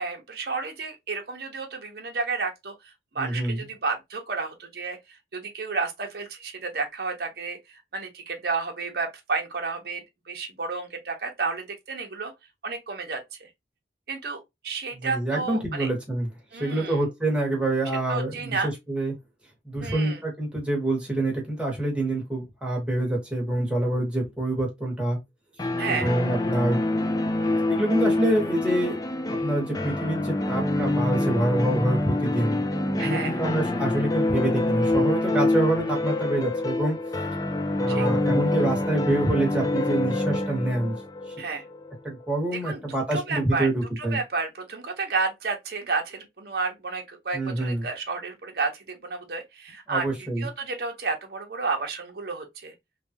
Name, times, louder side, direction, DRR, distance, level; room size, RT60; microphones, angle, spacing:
voice 1, 0.0-2.7 3.1-5.0 5.3-7.6 7.9-12.3 12.6-13.5 14.1-15.9 16.5-17.1 18.1-18.7 19.8-20.2 25.8-26.1 33.0-33.4 37.9-38.1 41.4-41.6 42.6-43.7 44.0-50.1 50.4-52.7, right 4 dB, 55° right, 0.8 m, -31 dB
voice 2, 3.2-3.6 15.0-16.3 16.5-19.1 19.6-25.2 26.0-26.8 27.4-29.0 29.4-32.6 32.9-37.0 37.8-41.0 41.3-41.4 42.0-44.2 47.3-47.8 49.9-50.5, right 1 dB, 5° right, 1.2 m, -26 dB
sound 1, 25.6-42.3, left 2 dB, 20° left, 0.4 m, -26 dB
3.3 x 2.3 x 2.7 m
head